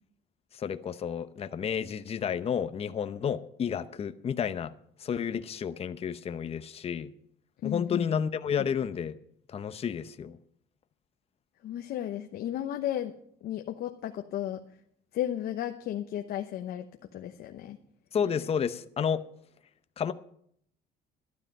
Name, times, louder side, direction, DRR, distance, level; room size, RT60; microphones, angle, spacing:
voice 1, 0.5-4.7 5.0-7.1 7.6-9.2 9.5-10.4 18.1-19.2 20.0-20.1, left 7 dB, 35° left, 11 dB, 0.7 m, -31 dB
voice 2, 7.6-8.1 11.6-13.1 13.4-14.6 15.1-16.9 17.1-17.8, left 11 dB, 70° left, 5 dB, 1.0 m, -34 dB
12.0 x 12.0 x 5.4 m, 0.66 s
cardioid pair, 110°, 17 cm